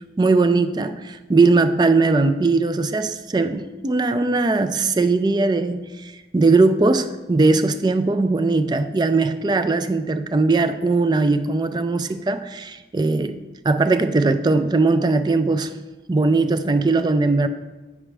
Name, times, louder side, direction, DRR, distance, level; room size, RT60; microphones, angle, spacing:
voice 1, 0.2-13.4 13.6-15.7 16.1-17.5, right 3 dB, 25° right, 10 dB, 0.3 m, -19 dB
8.4 x 6.1 x 3.3 m, 1.1 s
head